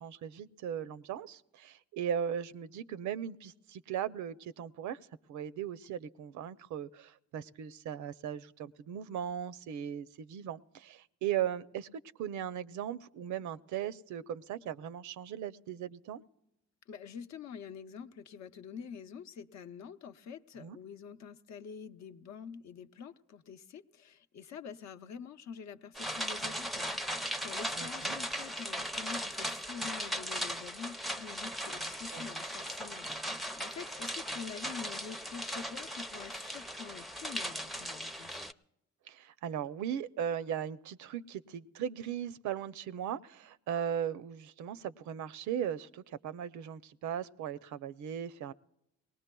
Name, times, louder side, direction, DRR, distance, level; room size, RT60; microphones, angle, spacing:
voice 1, 0.0-5.0 5.3-11.9 12.2-16.2 20.6-20.8 27.8-28.1 32.1-32.3 39.1-48.5, right 9 dB, 75° right, 15 dB, 0.5 m, -38 dB
voice 2, 16.9-38.4, left 7 dB, 65° left, 8 dB, 0.7 m, -47 dB
sound 1, 25.9-38.5, equal, ahead, 0.4 m, -38 dB
23.0 x 19.0 x 2.2 m, 0.85 s
cardioid pair, 90°, 30 cm